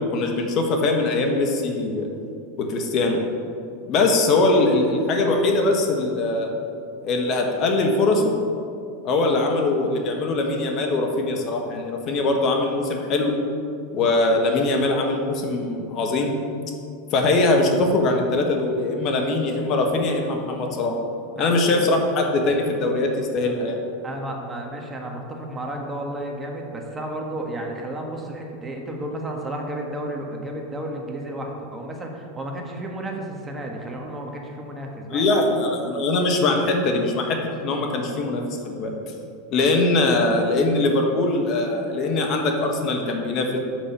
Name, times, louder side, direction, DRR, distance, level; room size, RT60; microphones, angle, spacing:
voice 1, 0.1-2.1 2.7-3.2 3.9-6.5 7.0-8.4 9.0-13.3 13.9-16.4 17.1-21.0 21.4-23.8 35.1-37.4 37.6-38.9 39.5-43.6, left 2 dB, 45° left, 2 dB, 1.2 m, -22 dB
voice 2, 24.0-35.4, right 1 dB, 20° right, 1 dB, 1.5 m, -32 dB
6.2 x 6.2 x 7.1 m, 2.5 s
hypercardioid pair, 95°, 0 cm